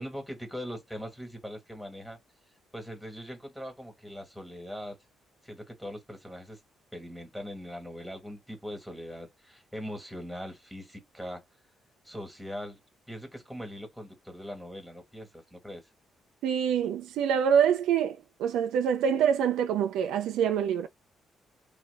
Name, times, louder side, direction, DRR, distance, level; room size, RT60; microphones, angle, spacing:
voice 1, 0.0-2.2 2.7-5.0 5.4-6.6 6.9-11.4 12.0-12.8 13.1-15.9, equal, ahead, 1.5 m, -41 dB
voice 2, 16.4-20.9, right 8 dB, 85° right, 0.4 m, -25 dB
3.1 x 2.3 x 3.3 m
cardioid pair, 90°, 0 cm